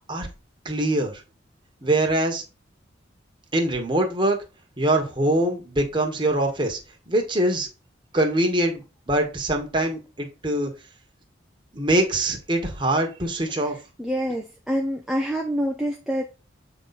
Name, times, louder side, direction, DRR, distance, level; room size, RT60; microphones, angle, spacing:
voice 1, 0.6-1.2 1.8-2.4 3.5-4.4 4.8-6.8 7.1-7.7 8.1-10.7 11.7-13.8, right 1 dB, 25° right, 2 dB, 1.4 m, -23 dB
voice 2, 14.0-16.3, equal, ahead, 0 dB, 0.7 m, -26 dB
7.7 x 4.0 x 4.2 m, 0.30 s
head